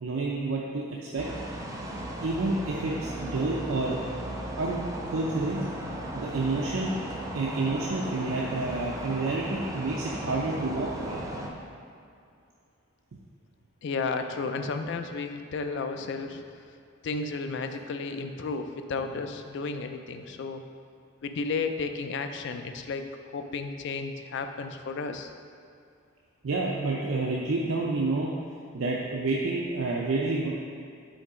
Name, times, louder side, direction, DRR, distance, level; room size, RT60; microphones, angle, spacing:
voice 1, 0.0-1.3 2.2-4.0 4.6-4.8 5.1-5.8 6.1-6.9 7.3-11.2 19.0-19.2 26.4-28.3 28.7-30.5, right 3 dB, 85° right, -3 dB, 0.5 m, -29 dB
sound 1, 1.2-11.5, right 1 dB, 15° right, 0.5 m, -36 dB
voice 2, 13.8-16.4 17.0-20.6 21.2-23.0 23.3-25.3, left 4 dB, 60° left, 7 dB, 0.4 m, -33 dB
5.2 x 3.8 x 4.8 m, 2.4 s
head